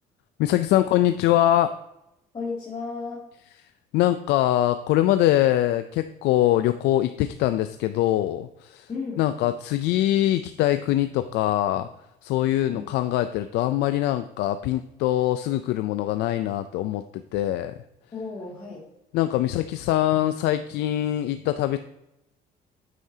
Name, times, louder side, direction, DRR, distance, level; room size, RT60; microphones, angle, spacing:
voice 1, 0.4-1.7 3.9-8.9 9.2-11.9 12.2-17.7 19.1-21.8, left 13 dB, 85° left, 11 dB, 0.4 m, -23 dB
voice 2, 2.3-3.2 8.9-9.2 12.7-12.9 18.1-18.8, left 4 dB, 30° left, -5 dB, 2.3 m, -33 dB
9.4 x 8.2 x 2.8 m, 0.86 s
cardioid pair, 110°, 17 cm